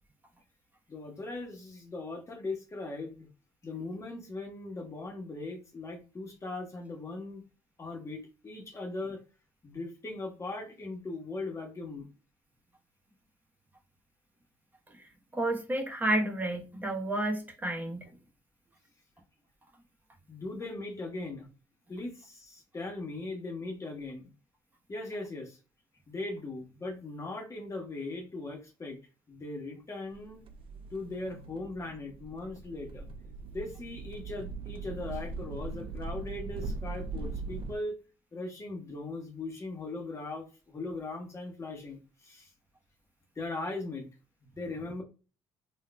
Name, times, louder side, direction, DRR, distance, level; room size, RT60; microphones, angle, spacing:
voice 1, 0.9-3.3 3.6-7.4 7.8-9.2 9.6-12.1 20.3-21.5 21.9-24.3 24.9-25.6 26.1-29.0 29.3-30.4 30.9-33.1 33.5-37.9 38.3-42.5 43.3-44.1 44.6-45.0, left 2 dB, 30° left, 1.3 m, -39 dB
voice 2, 15.0-18.1, right 1 dB, 15° right, 1.1 m, -31 dB
sound 1, 30.1-37.8, right 3 dB, 55° right, 0.5 m, -40 dB
3.6 x 2.5 x 2.3 m
cardioid pair, 85°, 11 cm